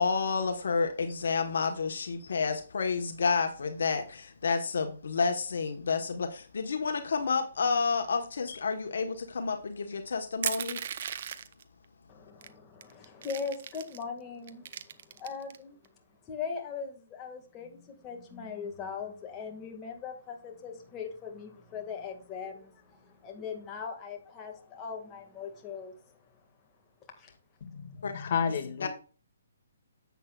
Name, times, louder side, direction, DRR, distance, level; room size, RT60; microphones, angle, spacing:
voice 1, 0.0-10.8 28.0-28.1 28.5-28.9, left 5 dB, 70° left, 1.2 m, -30 dB
Crushing, 10.4-11.6 12.4-12.5 12.8-14.0 14.5-15.6, right 8 dB, 50° right, 0.8 m, -36 dB
voice 2, 12.1-15.8 16.2-26.1 27.2-27.3, left 6 dB, 20° left, 1.9 m, -40 dB
voice 3, 27.6-28.9, left 7 dB, 45° left, 1.8 m, -31 dB
10.5 x 8.2 x 2.4 m
hypercardioid pair, 150°, 0 cm